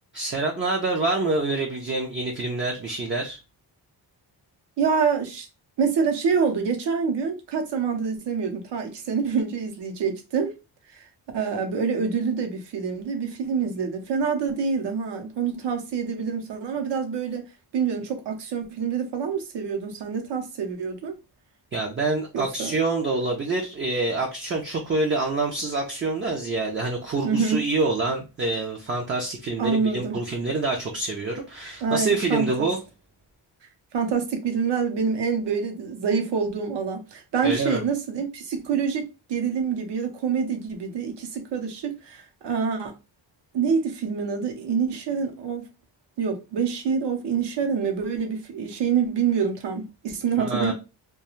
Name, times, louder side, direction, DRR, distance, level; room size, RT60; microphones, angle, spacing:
voice 1, 0.1-3.4 21.7-32.8 37.4-37.8 50.4-50.7, right 3 dB, 30° right, 0.4 m, -26 dB
voice 2, 4.8-5.5 5.8-10.5 10.9-11.0 11.3-17.5 17.7-21.2 22.3-22.7 27.2-27.6 29.6-30.2 31.8-32.7 33.9-42.9 43.5-45.7 46.2-50.7, right 6 dB, 75° right, 0.8 m, -26 dB
2.4 x 2.3 x 2.9 m
wide cardioid pair, 150°, 42 cm